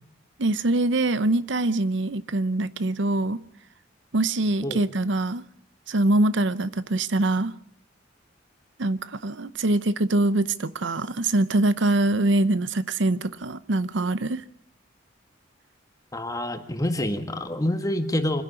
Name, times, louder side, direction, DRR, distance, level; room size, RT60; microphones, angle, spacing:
voice 1, 0.4-3.4 4.1-5.4 5.9-7.5 8.8-14.4, right 2 dB, 70° right, 0.8 m, -24 dB
voice 2, 16.1-18.4, left 1 dB, 20° left, 1.7 m, -27 dB
25.5 x 10.5 x 10.0 m
head